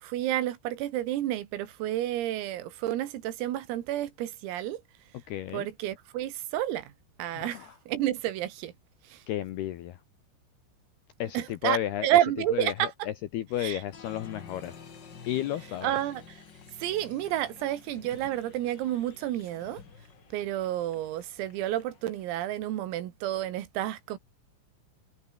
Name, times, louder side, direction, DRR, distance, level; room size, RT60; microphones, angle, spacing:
voice 1, 0.0-4.8 5.5-6.9 7.2-8.7 9.1-9.2 11.3-13.1 13.6-13.8 15.8-16.4 16.8-19.8 20.3-24.2, right 13 dB, 85° right, 4.6 m, -30 dB
voice 2, 5.3-5.7 7.4-7.7 9.3-10.0 11.2-12.1 12.5-12.9 13.3-14.8 15.3-16.0, left 12 dB, 75° left, 2.5 m, -32 dB
Applause, 13.9-22.3, left 6 dB, 90° left, 0.9 m, -50 dB
omnidirectional pair, 6.0 m